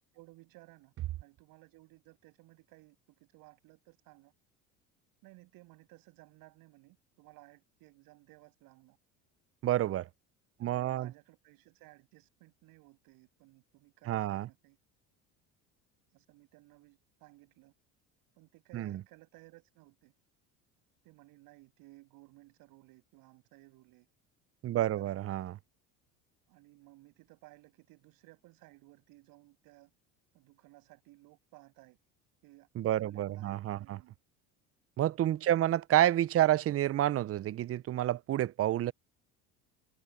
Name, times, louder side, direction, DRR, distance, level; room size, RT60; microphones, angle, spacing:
voice 1, 0.1-0.9 1.2-4.3 5.2-9.0 10.6-14.8 16.1-17.7 18.3-20.1 21.0-24.1 24.7-25.2 26.5-29.9 30.3-32.0 32.4-34.2 35.2-35.7, right 21 dB, 70° right, 7.4 m, -58 dB
voice 2, 9.6-10.1 10.6-11.1 14.1-14.5 18.7-19.0 24.6-25.5 32.8-34.0 35.0-38.9, right 13 dB, 40° right, 0.7 m, -29 dB
supercardioid pair, 90°, 36 cm